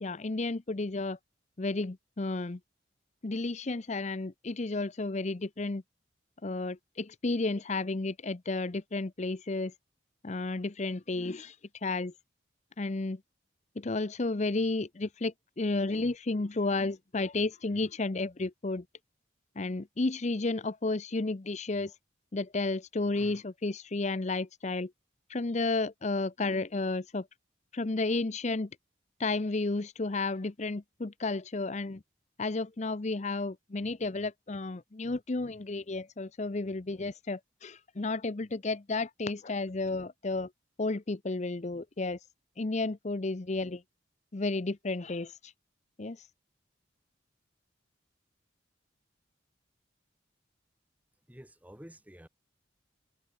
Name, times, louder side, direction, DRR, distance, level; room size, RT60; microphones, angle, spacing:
voice 1, 0.0-1.2 1.6-2.6 3.2-5.8 6.4-9.7 10.2-12.1 12.8-13.2 13.8-18.8 19.6-21.9 22.3-24.9 25.3-27.3 27.7-28.7 29.2-32.0 32.4-40.5 40.8-42.2 42.6-43.8 44.3-45.5 46.0-46.3, left 3 dB, 35° left, 0.7 m, -32 dB
voice 2, 51.3-52.3, equal, 10° right, 1.5 m, -50 dB
head